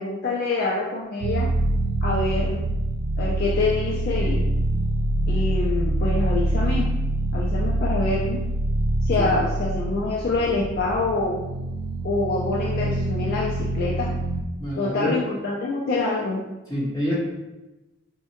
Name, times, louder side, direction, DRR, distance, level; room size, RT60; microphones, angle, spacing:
voice 1, 0.0-1.5 2.0-2.7 3.2-4.5 5.3-6.9 7.3-8.4 9.0-11.4 12.0-14.1 14.8-16.5, left 3 dB, 50° left, -3 dB, 0.4 m, -26 dB
sound 1, 1.2-14.4, right 1 dB, 80° right, 0.3 m, -25 dB
voice 2, 14.6-15.1 16.7-17.2, equal, 20° left, -9 dB, 1.3 m, -27 dB
4.5 x 2.1 x 2.8 m, 1.0 s
head